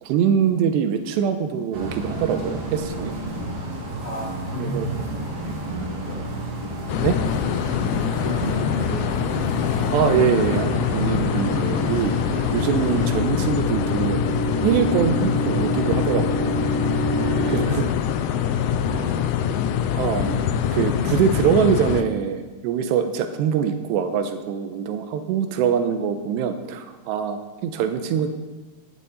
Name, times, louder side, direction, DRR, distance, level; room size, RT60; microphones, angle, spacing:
voice 1, 0.0-3.2 4.6-4.9 7.0-7.2 9.9-12.1 12.5-14.2 14.6-16.5 17.5-17.9 20.0-28.3, right 7 dB, 90° right, 8 dB, 3.0 m, -23 dB
sound 1, 1.7-13.1, right 1 dB, 50° right, 3.6 m, -31 dB
voice 2, 4.0-6.2 7.7-9.7 17.1-17.8 18.3-18.6 18.9-19.3, right 1 dB, 70° right, -4 dB, 0.6 m, -34 dB
sound 2, 6.9-22.0, left 8 dB, 75° left, 2.5 m, -24 dB
sound 3, 10.3-17.6, right 2 dB, 25° left, 2.0 m, -29 dB
15.0 x 11.5 x 4.1 m, 1.2 s
omnidirectional pair, 4.8 m